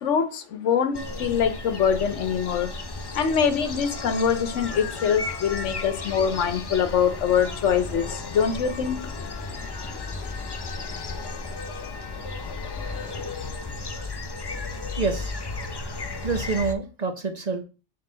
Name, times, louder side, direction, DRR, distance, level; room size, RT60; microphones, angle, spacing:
voice 1, 0.0-2.7 3.1-9.0, left 7 dB, 85° left, 9 dB, 1.1 m, -24 dB
sound 1, 0.9-16.7, left 3 dB, 35° left, 0.4 m, -34 dB
sound 2, 3.7-13.3, left 7 dB, 65° left, 0.9 m, -42 dB
voice 2, 15.0-15.3 16.2-17.6, right 4 dB, 40° right, 6 dB, 0.7 m, -27 dB
6.9 x 3.7 x 3.8 m, 0.33 s
omnidirectional pair, 1.2 m